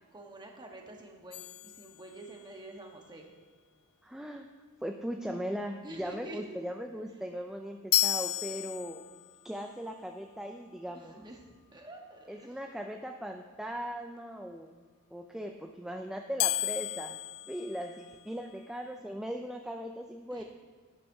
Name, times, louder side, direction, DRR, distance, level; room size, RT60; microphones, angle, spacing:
voice 1, 0.1-3.3 5.8-6.4 7.1-7.2 10.9-12.6 20.3-20.4, right 1 dB, 20° right, 1 dB, 1.1 m, -48 dB
sound 1, 1.3-2.6 7.9-9.4 16.4-18.5, left 14 dB, 70° left, 0.4 m, -33 dB
voice 2, 4.0-4.5 4.8-9.0 9.4-11.3 12.3-14.8 15.1-17.2 17.5-20.4, equal, 5° right, 3 dB, 0.3 m, -39 dB
11.5 x 9.4 x 2.7 m, 1.4 s
head